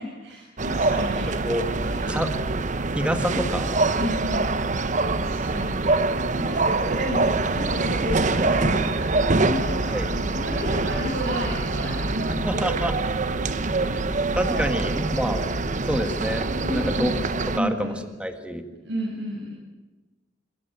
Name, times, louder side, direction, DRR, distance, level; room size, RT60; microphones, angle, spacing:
voice 1, 0.0-1.4 1.7-2.1 3.9-10.0 10.3-12.4 14.5-14.7 16.6-18.0 18.4-18.5 18.8-19.5, equal, 80° right, -4 dB, 7.7 m, -32 dB
sound 1, 0.6-17.6, right 3 dB, 40° right, 1.0 m, -25 dB
voice 2, 2.9-3.8 9.9-10.1 12.4-13.0 13.6-14.0 14.3-15.4 15.9-17.1 17.6-17.9 18.2-18.7, equal, 5° right, 6 dB, 1.7 m, -27 dB
sound 2, 8.5-16.3, left 1 dB, 60° left, 1.8 m, -39 dB
27.0 x 16.0 x 9.1 m, 1.2 s
head